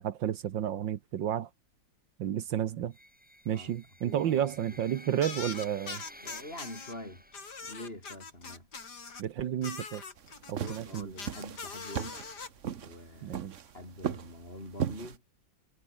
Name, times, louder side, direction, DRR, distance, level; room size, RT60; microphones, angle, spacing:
voice 1, 0.0-1.5 2.2-2.9 3.5-6.0 9.2-10.0 10.5-11.1 13.2-13.6, right 10 dB, 75° right, 1.8 m, -31 dB
sound 1, 2.9-8.0, equal, 5° right, 6.0 m, -53 dB
voice 2, 4.0-4.8 6.2-7.2 7.6-8.7 10.5-12.2 12.8-15.2, left 1 dB, 30° left, 7.3 m, -45 dB
sound 2, 5.2-6.9 7.3-9.2 9.6-12.5, left 4 dB, 60° left, 3.5 m, -42 dB
sound 3, 10.2-15.2, right 8 dB, 45° right, 1.2 m, -37 dB
omnidirectional pair, 2.1 m